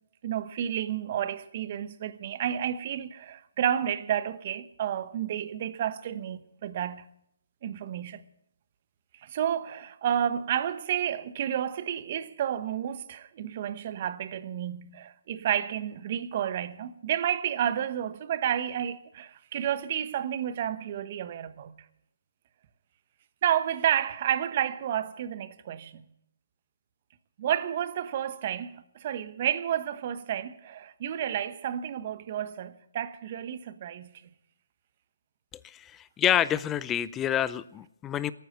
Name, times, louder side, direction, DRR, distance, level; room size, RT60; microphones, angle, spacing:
voice 1, 0.2-7.0 7.6-8.2 9.2-21.8 23.4-26.0 27.4-34.1, right 10 dB, 40° right, 1.1 m, -31 dB
voice 2, 35.6-38.3, left 10 dB, 15° left, 0.5 m, -28 dB
19.0 x 9.3 x 7.9 m
hypercardioid pair, 145°, 0 cm